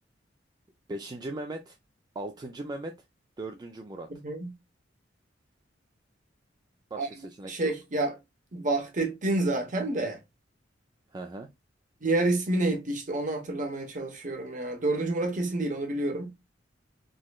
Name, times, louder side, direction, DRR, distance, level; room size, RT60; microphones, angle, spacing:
voice 1, 0.9-1.8 2.2-3.0 3.4-4.1 6.9-7.7 11.1-11.5, right 2 dB, 20° right, 0.3 m, -38 dB
voice 2, 4.1-4.5 7.0-7.1 7.4-8.1 8.5-10.2 12.0-16.3, right 2 dB, 45° right, 1.0 m, -29 dB
3.8 x 3.1 x 2.3 m
head